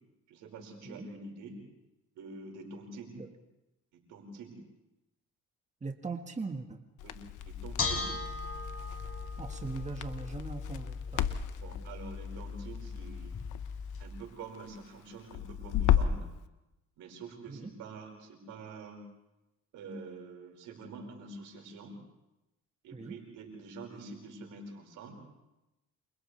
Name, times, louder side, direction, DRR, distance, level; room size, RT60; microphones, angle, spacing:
voice 1, 0.3-1.6 2.2-3.2 3.9-4.6 7.0-7.2 7.4-8.1 11.6-13.4 14.0-16.3 17.0-19.0 19.7-21.9 22.8-25.2, right 3 dB, 90° right, 1 dB, 5.4 m, -46 dB
voice 2, 5.8-6.8 9.4-11.4 17.5-17.7 22.9-23.2, right 3 dB, 25° right, 4 dB, 1.6 m, -40 dB
Crackle, 7.0-16.3, left 10 dB, 90° left, 1.1 m, -35 dB
Bell / Dishes pots and pans, 7.4-14.0, left 4 dB, 50° left, 3.8 m, -38 dB
29.5 x 27.5 x 3.4 m, 0.96 s
cardioid pair, 90°, 30 cm